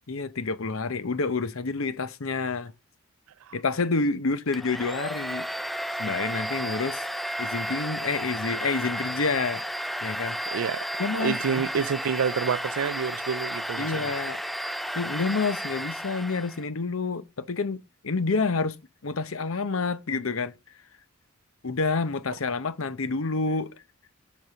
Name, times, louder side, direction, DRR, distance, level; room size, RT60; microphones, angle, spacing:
voice 1, 0.0-2.7 3.5-5.4 6.0-7.1 7.4-9.6 10.0-10.4 11.0-11.7 13.8-14.4 14.9-17.8 18.0-18.8 19.0-20.5 21.6-23.7, left 4 dB, 75° left, 0.8 m, -28 dB
Domestic sounds home sounds, 4.5-16.6, equal, ahead, 0.4 m, -33 dB
voice 2, 10.5-10.9 11.2-14.1, right 6 dB, 80° right, 0.4 m, -28 dB
8.0 x 5.4 x 5.6 m
head